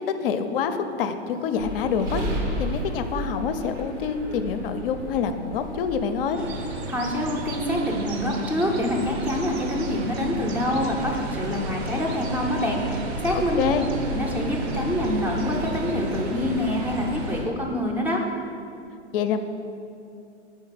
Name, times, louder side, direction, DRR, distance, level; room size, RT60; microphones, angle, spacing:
voice 1, 0.1-6.4 13.3-13.9 19.1-19.4, left 6 dB, 50° left, 9 dB, 0.5 m, -26 dB
sound 1, 1.6-17.5, right 1 dB, 85° right, 1.1 m, -34 dB
sound 2, 6.4-17.4, right 2 dB, 60° right, 0.8 m, -34 dB
voice 2, 6.9-13.7 14.1-18.2, left 1 dB, 5° right, 0 dB, 0.5 m, -26 dB
4.5 x 4.4 x 5.7 m, 2.5 s
hypercardioid pair, 115°, 35 cm